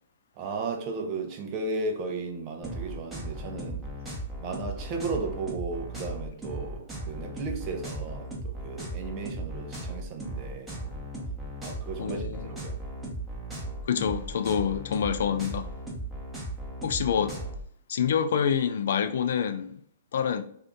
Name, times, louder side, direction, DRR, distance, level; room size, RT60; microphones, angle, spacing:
voice 1, 0.4-3.8 4.4-10.7 11.6-12.8, right 3 dB, 35° right, 0.7 m, -35 dB
sound 1, 2.6-17.6, right 1 dB, 10° right, 1.0 m, -37 dB
voice 2, 12.0-12.5 13.9-15.7 16.8-17.4 17.9-19.8 20.1-20.4, left 7 dB, 70° left, 0.3 m, -27 dB
2.7 x 2.5 x 3.6 m
hypercardioid pair, 140°, 0 cm